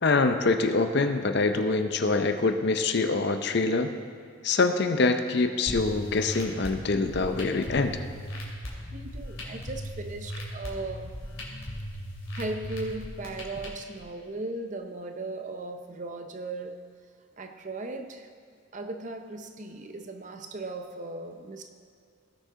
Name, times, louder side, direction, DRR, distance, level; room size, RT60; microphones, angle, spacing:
voice 1, 0.0-3.9 4.4-8.0, left 3 dB, 50° left, 7 dB, 0.6 m, -25 dB
sound 1, 5.7-13.7, equal, 70° left, 2.6 m, -38 dB
voice 2, 8.9-11.1 12.3-16.8 17.4-18.3 18.7-21.7, right 2 dB, 35° right, 6 dB, 0.6 m, -37 dB
17.5 x 6.4 x 3.7 m, 2.3 s
head